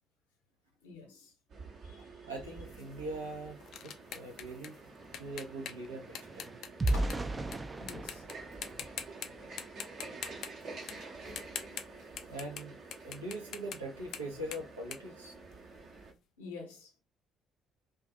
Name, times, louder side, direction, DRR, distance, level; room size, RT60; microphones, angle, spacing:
voice 1, 0.8-2.1 6.6-7.4 7.8-9.0 10.9-11.0 11.5-11.8 16.4-16.9, left 3 dB, 75° left, 0.8 m, -50 dB
sound 1, 1.5-16.1, right 3 dB, 50° right, 0.8 m, -49 dB
voice 2, 1.9-4.8 5.1-6.6 12.3-15.3, right 1 dB, 80° right, 0.6 m, -42 dB
sound 2, 2.7-7.6 7.9-8.3 8.6-9.3 9.6-12.6 12.9-15.9, left 8 dB, 55° left, 0.4 m, -44 dB
sound 3, 3.8-3.9 4.2-9.7 10.2-10.4 10.8-11.0, right 1 dB, 25° right, 0.3 m, -37 dB
2.4 x 2.3 x 2.6 m
figure-of-eight pair, 50°, 0 cm